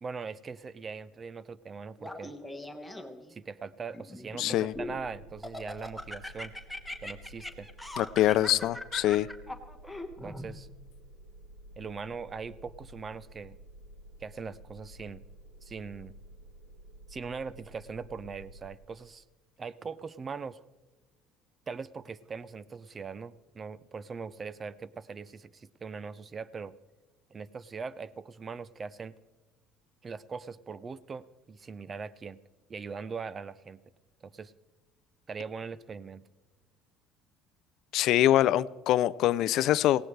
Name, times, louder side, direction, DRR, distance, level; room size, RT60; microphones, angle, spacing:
voice 1, 0.0-2.3 3.3-6.5 7.0-7.7 8.2-8.6 10.2-10.7 11.8-13.6 14.2-15.2 15.6-16.2 17.1-19.2 19.6-20.6 21.7-26.7 27.3-29.2 30.0-32.4 32.7-33.8 34.2-34.5 35.3-36.2, right 5 dB, 30° right, 18 dB, 0.5 m, -41 dB
Laughter, 2.0-3.3 3.9-5.0 5.4-10.5, left 1 dB, ahead, 1.3 m, -40 dB
voice 2, 4.4-4.7 8.0-9.3 37.9-40.0, left 13 dB, 65° left, 19 dB, 0.4 m, -24 dB
sound 1, 4.7-18.8, right 1 dB, 75° right, 2.7 m, -52 dB
17.5 x 17.0 x 3.3 m, 1.3 s
cardioid pair, 110°, 0 cm